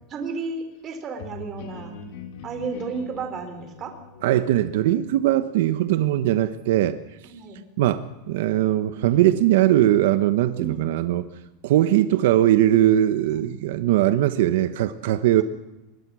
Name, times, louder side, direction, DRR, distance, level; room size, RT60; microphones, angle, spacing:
voice 1, 0.1-2.0 2.4-3.9 7.2-7.6 10.6-10.8 13.3-13.5, right 5 dB, 30° right, 6 dB, 4.0 m, -33 dB
sound 1, 1.2-6.8, left 4 dB, 65° left, 5.4 m, -42 dB
voice 2, 4.2-7.0 7.8-11.3 11.6-15.4, right 13 dB, 80° right, 11 dB, 1.2 m, -20 dB
25.0 x 21.5 x 6.3 m, 0.97 s
supercardioid pair, 145°, 0 cm